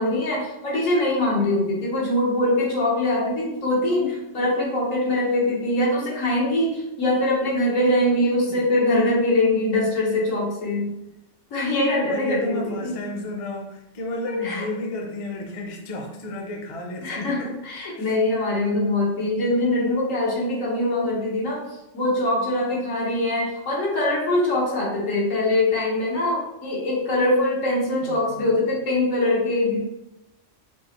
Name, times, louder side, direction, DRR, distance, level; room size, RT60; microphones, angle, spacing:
voice 1, 0.0-10.9 11.5-13.0 14.3-14.6 17.0-21.6 21.9-29.8, left 1 dB, 90° left, -4 dB, 1.6 m, -23 dB
voice 2, 12.0-17.6 18.0-18.2 28.0-28.5, left 1 dB, 40° left, 2 dB, 0.5 m, -33 dB
4.6 x 2.8 x 3.0 m, 0.93 s
omnidirectional pair, 1.3 m